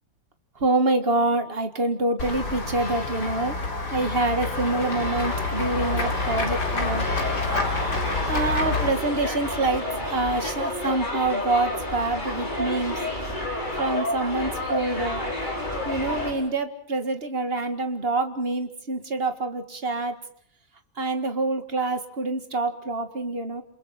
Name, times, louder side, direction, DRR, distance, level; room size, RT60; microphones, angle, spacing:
voice 1, 0.6-3.6 3.9-7.1 8.3-13.0 13.8-15.2 15.9-20.2 21.0-23.6, right 2 dB, 30° right, 7 dB, 1.9 m, -26 dB
Run / Walk footsteps / Bell, 2.2-8.9, left 3 dB, 55° left, 4.2 m, -28 dB
sound 1, 4.4-16.3, left 1 dB, 20° left, 5.2 m, -30 dB
29.0 x 27.5 x 4.3 m, 0.64 s
omnidirectional pair, 2.2 m